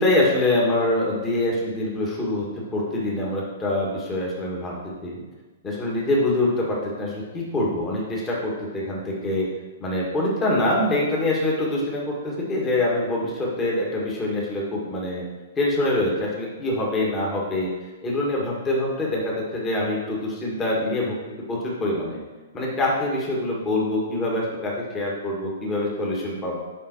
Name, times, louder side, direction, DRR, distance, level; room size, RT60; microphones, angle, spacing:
voice 1, 0.0-2.5 2.7-4.7 5.0-5.2 5.6-9.5 9.8-15.2 15.6-17.7 18.0-21.2 21.5-22.2 22.5-26.6, left 1 dB, 20° left, -4 dB, 1.9 m, -25 dB
7.4 x 5.4 x 4.7 m, 1.2 s
hypercardioid pair, 125°, 0 cm